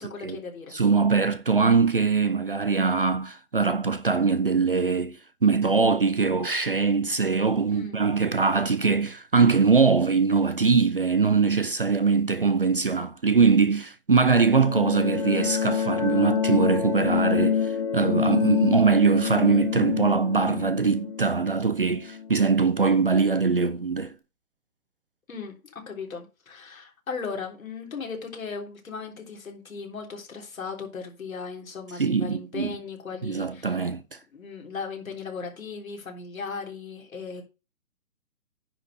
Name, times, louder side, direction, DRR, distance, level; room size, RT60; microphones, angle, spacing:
voice 1, 0.0-0.7 7.7-8.1 14.9-15.2 25.3-25.6 25.9-33.8 34.3-37.4, left 5 dB, 70° left, 3.6 m, -37 dB
voice 2, 0.7-5.2 5.4-24.1 32.0-32.7 33.2-34.0, right 5 dB, 40° right, 0.4 m, -22 dB
sound 1, 14.2-22.8, left 7 dB, 25° left, 0.9 m, -27 dB
9.9 x 4.2 x 6.4 m
hypercardioid pair, 170°, 42 cm